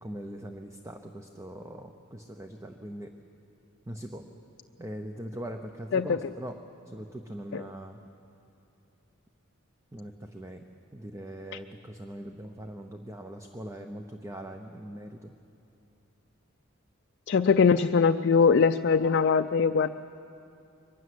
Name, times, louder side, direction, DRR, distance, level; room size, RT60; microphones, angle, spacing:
voice 1, 0.0-3.1 3.9-4.3 4.8-6.6 6.9-8.0 9.9-10.6 10.9-15.3, right 1 dB, 15° right, 5 dB, 0.8 m, -41 dB
voice 2, 17.3-19.9, left 5 dB, 55° left, 7 dB, 0.4 m, -22 dB
22.5 x 12.5 x 9.5 m, 2.7 s
head